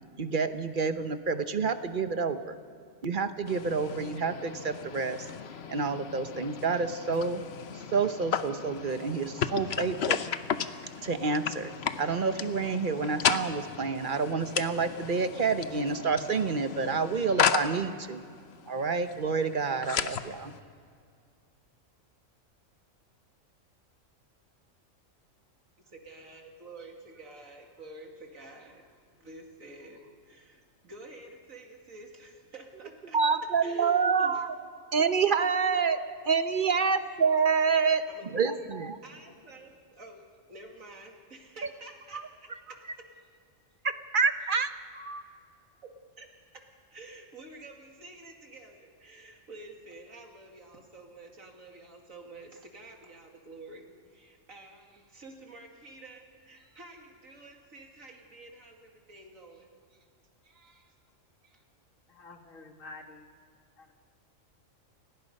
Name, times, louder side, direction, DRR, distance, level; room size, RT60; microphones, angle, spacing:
voice 1, 0.2-2.6 3.0-5.3 5.7-7.4 7.7-10.2 11.0-11.7 12.0-18.2 18.7-20.5 33.1-34.5 34.9-38.0 38.3-39.0 42.1-42.2 43.8-45.2, right 5 dB, 45° right, 10 dB, 1.0 m, -28 dB
sound 1, 3.5-20.6, left 7 dB, 55° left, 1.0 m, -34 dB
voice 2, 25.8-33.2 33.6-34.4 38.1-43.1 45.8-46.6 46.9-60.1 60.4-61.0 61.4-61.6, right 2 dB, 80° right, 2 dB, 2.8 m, -50 dB
voice 3, 62.1-63.3 63.8-63.9, left 3 dB, 75° left, 5 dB, 2.1 m, -48 dB
30.0 x 17.5 x 5.4 m, 2.2 s
omnidirectional pair, 1.4 m